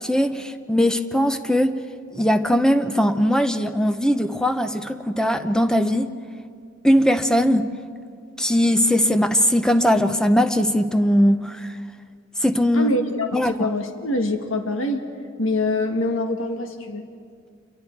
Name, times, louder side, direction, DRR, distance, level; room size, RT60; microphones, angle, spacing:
voice 1, 0.0-1.8 2.1-6.2 6.8-7.7 8.4-11.7 12.4-12.9 13.3-13.5, equal, 5° left, 9 dB, 0.8 m, -20 dB
voice 2, 12.7-15.1 15.4-17.1, left 1 dB, 90° left, 5 dB, 1.8 m, -24 dB
28.5 x 23.0 x 4.7 m, 2.2 s
head